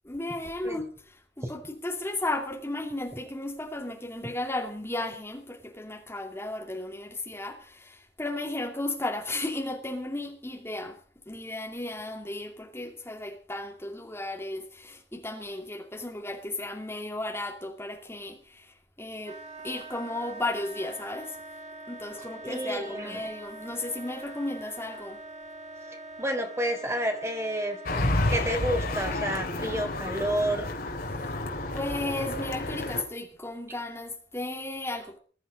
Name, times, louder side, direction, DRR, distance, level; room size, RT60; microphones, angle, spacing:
voice 1, 0.0-11.0 11.3-19.4 19.6-21.4 21.9-25.2 31.1-31.3 31.7-35.2, left 2 dB, 15° left, 2.5 m, -34 dB
Wind instrument woodwind instrument, 19.2-29.3, right 2 dB, 40° right, 2.7 m, -44 dB
voice 2, 22.4-23.3 25.9-28.0 28.3-30.7, right 1 dB, 15° right, 3.6 m, -30 dB
sound 1, 27.8-33.0, left 2 dB, 55° left, 3.8 m, -30 dB
21.5 x 12.5 x 5.4 m
head